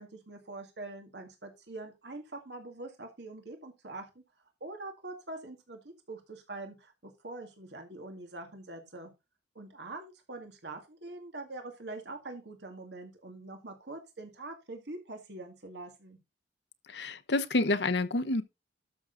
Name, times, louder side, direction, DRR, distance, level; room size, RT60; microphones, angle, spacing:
voice 1, 0.0-4.1 4.6-5.8 6.1-9.1 9.6-16.2, right 2 dB, 70° right, 2.0 m, -44 dB
voice 2, 16.9-18.4, left 2 dB, 75° left, 1.0 m, -28 dB
12.5 x 6.3 x 3.9 m
head